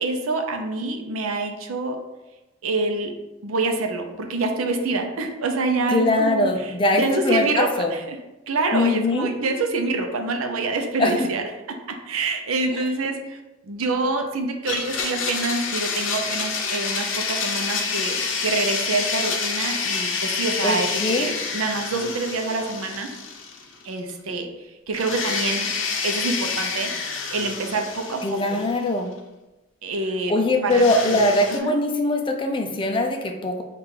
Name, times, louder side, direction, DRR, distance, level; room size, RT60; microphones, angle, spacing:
voice 1, 0.0-2.0 2.6-3.1 3.4-6.7 7.0-8.2 8.5-11.4 12.1-13.4 13.6-20.9 21.2-23.1 23.8-24.5 24.9-25.7 26.0-26.9 27.3-28.6 29.8-30.3 30.6-31.3 31.6-31.7, right 3 dB, 85° right, 4 dB, 0.6 m, -26 dB
voice 2, 5.9-7.9 8.7-9.3 11.0-11.3 12.7-12.9 20.6-21.3 28.2-29.1 30.3-33.6, left 2 dB, 25° left, 4 dB, 0.4 m, -22 dB
Domestic sounds home sounds, 14.6-23.8 24.1-24.2 24.9-28.9 30.7-31.6, left 5 dB, 65° left, 0.6 m, -28 dB
3.7 x 2.4 x 4.4 m, 1.0 s
head